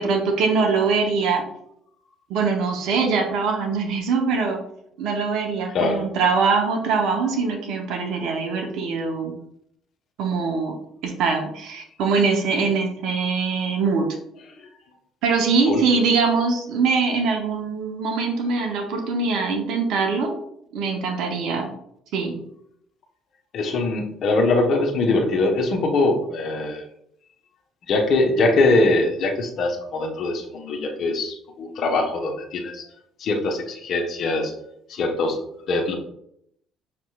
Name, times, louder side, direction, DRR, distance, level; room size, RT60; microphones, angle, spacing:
voice 1, 0.0-1.4 2.3-4.6 5.0-9.3 10.2-10.8 11.0-14.1 15.2-20.3 20.7-21.7 22.1-22.4, right 4 dB, 60° right, 3 dB, 0.7 m, -23 dB
voice 2, 5.7-6.0 14.6-14.7 15.7-15.8 23.5-26.8 27.9-32.8 33.2-34.5 34.9-35.4 35.7-35.9, left 2 dB, 55° left, 2 dB, 0.8 m, -22 dB
6.6 x 2.9 x 2.3 m, 0.74 s
figure-of-eight pair, 50°, 0 cm